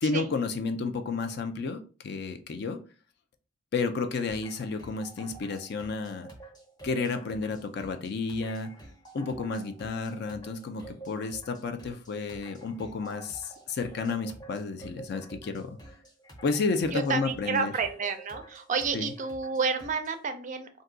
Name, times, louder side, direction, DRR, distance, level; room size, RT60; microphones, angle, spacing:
voice 1, 0.0-2.8 3.7-6.3 6.8-8.7 9.1-15.8 16.4-17.7 18.9-19.1, left 4 dB, 55° left, 0.4 m, -31 dB
sound 1, 4.3-20.2, right 2 dB, 20° left, 0.7 m, -49 dB
voice 2, 16.9-20.7, right 5 dB, 40° right, 0.4 m, -30 dB
2.6 x 2.3 x 3.7 m
head